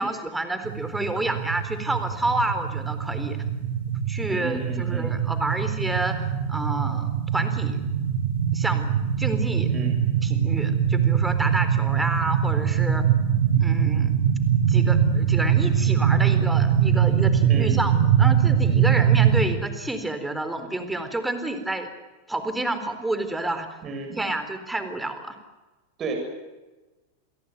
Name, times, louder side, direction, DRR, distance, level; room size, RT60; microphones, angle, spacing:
voice 1, 0.0-3.4 4.1-7.8 8.5-9.7 10.2-13.0 13.6-14.1 14.7-21.9 22.3-23.7 24.2-25.4, right 2 dB, 5° right, 9 dB, 4.0 m, -29 dB
sound 1, 0.6-19.4, right 8 dB, 75° right, 6.6 m, -22 dB
voice 2, 4.3-5.1 9.7-10.0 17.5-17.7 23.8-24.2 26.0-26.1, right 3 dB, 30° right, 3 dB, 8.0 m, -33 dB
29.0 x 17.5 x 9.5 m, 1.2 s
supercardioid pair, 125°, 0 cm